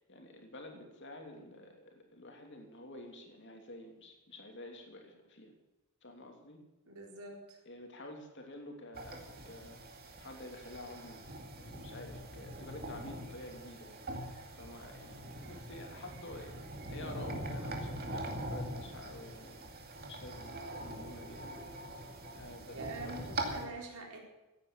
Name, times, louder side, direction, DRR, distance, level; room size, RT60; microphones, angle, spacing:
voice 1, 0.0-5.5 6.0-6.6 7.6-9.8 10.2-11.3 11.5-14.0 14.5-19.7 20.0-21.6 22.3-23.4, left 1 dB, 55° left, 3 dB, 3.1 m, -49 dB
voice 2, 6.9-7.6 22.7-24.2, right 3 dB, 75° right, 0 dB, 4.2 m, -45 dB
sound 1, 8.9-23.7, right 1 dB, 45° right, 2.4 m, -43 dB
16.5 x 9.7 x 7.0 m, 1.0 s
head